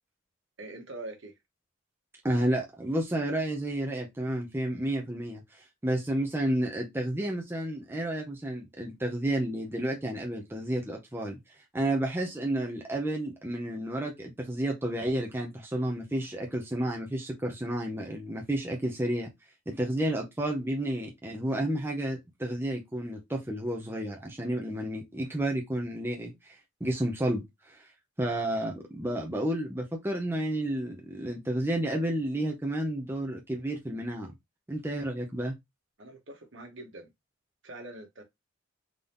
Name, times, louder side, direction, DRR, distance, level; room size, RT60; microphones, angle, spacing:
voice 1, 0.6-1.3 36.0-37.1 37.6-38.2, right 2 dB, 65° right, 1.2 m, -43 dB
voice 2, 2.2-11.4 11.7-19.3 19.7-27.8 28.2-34.3 34.7-35.5, right 1 dB, 10° right, 0.7 m, -31 dB
3.8 x 2.8 x 3.5 m
head